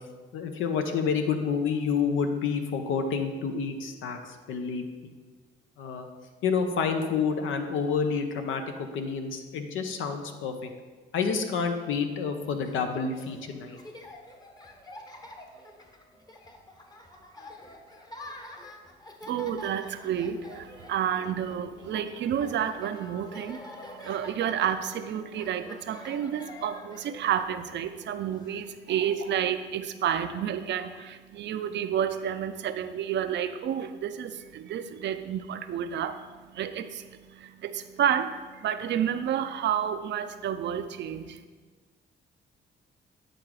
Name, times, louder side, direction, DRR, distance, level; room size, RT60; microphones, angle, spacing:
voice 1, 0.3-5.1 5.8-6.1 6.4-10.7 11.1-13.8, left 5 dB, 80° left, 6 dB, 0.8 m, -29 dB
Laughter, 12.4-29.2, left 1 dB, 20° left, 0.9 m, -47 dB
voice 2, 19.2-41.4, right 9 dB, 65° right, 10 dB, 0.5 m, -30 dB
8.8 x 3.8 x 4.7 m, 1.4 s
cardioid pair, 90°, 20 cm